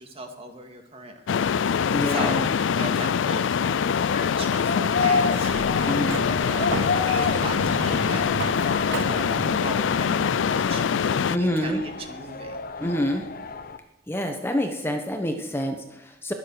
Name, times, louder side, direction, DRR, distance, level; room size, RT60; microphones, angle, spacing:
voice 1, 0.0-1.5 1.7-2.4 2.8-6.1 6.5-8.3 8.6-12.6, right 2 dB, 30° right, 4 dB, 2.1 m, -38 dB
sound 1, 1.3-11.4, left 7 dB, 80° left, 0.4 m, -24 dB
voice 2, 1.9-2.5 5.9-6.2 11.3-11.8 12.8-13.3 14.1-16.3, equal, 15° left, 4 dB, 1.1 m, -27 dB
sound 2, 3.5-13.8, left 4 dB, 50° left, 0.7 m, -31 dB
Sliding door, 5.2-10.9, right 5 dB, 85° right, 0.5 m, -35 dB
21.0 x 7.4 x 6.5 m, 0.88 s
head